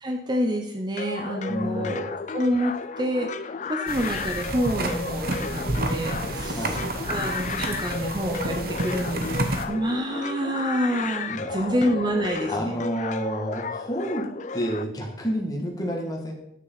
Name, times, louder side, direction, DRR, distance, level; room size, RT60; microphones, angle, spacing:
voice 1, 0.0-12.7, equal, 25° right, 2 dB, 0.7 m, -28 dB
sound 1, 1.0-14.8, left 5 dB, 40° left, 0.4 m, -33 dB
voice 2, 1.5-2.0 6.5-6.8 11.3-11.7 12.5-16.3, equal, 20° left, 0 dB, 2.0 m, -30 dB
sound 2, 3.9-9.6, right 2 dB, 55° right, 1.0 m, -30 dB
9.7 x 6.5 x 5.8 m, 0.81 s
head